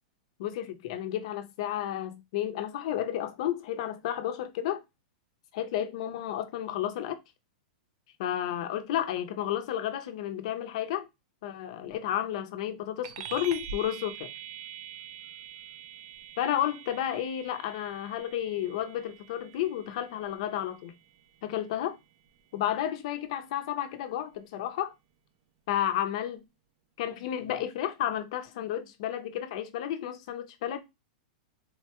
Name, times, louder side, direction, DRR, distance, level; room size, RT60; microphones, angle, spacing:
voice 1, 0.4-4.8 5.5-7.2 8.2-11.1 11.4-14.3 16.4-20.9 21.4-22.0 22.5-24.9 25.7-26.4 27.0-30.8, left 11 dB, 50° left, 0.6 m, -32 dB
sound 1, 13.0-22.9, right 8 dB, 45° right, 0.4 m, -45 dB
3.8 x 2.2 x 2.9 m
supercardioid pair, 165°, 5 cm